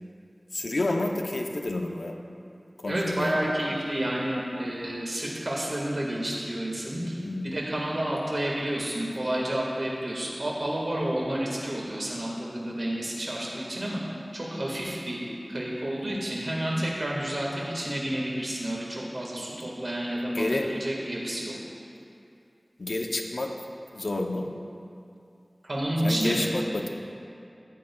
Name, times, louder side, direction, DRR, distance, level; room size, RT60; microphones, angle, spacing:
voice 1, 0.5-2.1 2.8-3.5 7.2-7.5 16.0-16.3 20.3-20.7 22.8-23.5 23.9-24.5 26.0-26.9, left 2 dB, 90° left, 3 dB, 0.6 m, -30 dB
voice 2, 2.9-7.2 7.4-14.0 14.3-15.2 15.5-21.5 25.6-26.5, right 1 dB, 75° right, -4 dB, 1.6 m, -30 dB
14.0 x 8.9 x 2.3 m, 2.5 s
wide cardioid pair, 45°, 0 cm